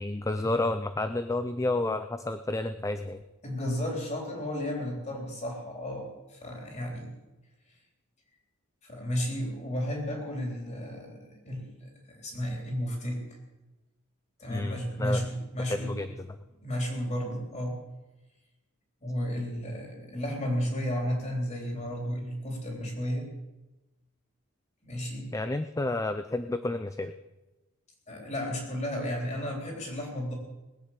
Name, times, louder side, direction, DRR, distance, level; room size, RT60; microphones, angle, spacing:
voice 1, 0.0-3.2 14.5-15.2 15.7-16.3 25.3-27.1, left 2 dB, 15° left, 10 dB, 0.4 m, -30 dB
voice 2, 3.4-7.1 8.8-13.2 14.4-15.9 16.6-17.8 19.0-23.3 24.8-25.3 28.1-30.3, equal, 30° left, 0 dB, 3.8 m, -33 dB
20.0 x 8.5 x 7.5 m, 1.1 s
head